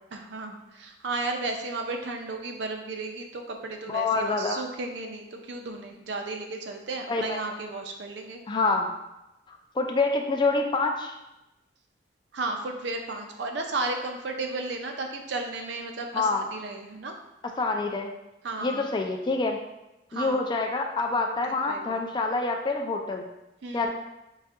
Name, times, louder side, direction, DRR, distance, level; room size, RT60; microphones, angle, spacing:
voice 1, 0.1-8.4 12.3-17.2 18.4-18.9 20.1-20.4 21.1-21.4 21.7-22.0 23.6-23.9, right 3 dB, 65° right, 4 dB, 0.5 m, -34 dB
voice 2, 3.9-4.6 7.1-7.4 8.5-8.9 9.5-11.1 16.1-16.5 17.6-18.1 18.6-19.6 20.1-23.2 23.7-23.9, left 3 dB, 25° left, 3 dB, 0.3 m, -26 dB
4.8 x 2.6 x 2.4 m, 0.93 s
head